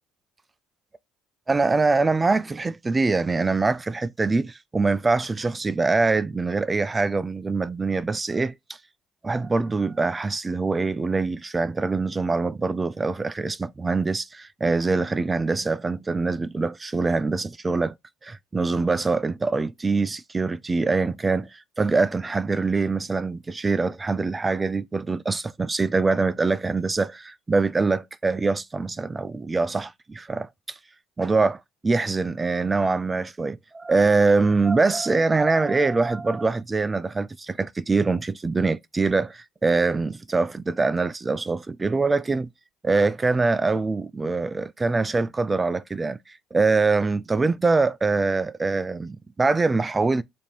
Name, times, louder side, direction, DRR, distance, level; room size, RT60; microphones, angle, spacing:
voice 1, 1.5-8.5 9.2-17.9 18.2-30.8 31.2-42.5 42.8-50.2, right 3 dB, 25° right, 0.3 m, -24 dB
4.9 x 2.7 x 3.2 m
supercardioid pair, 70°, 0 cm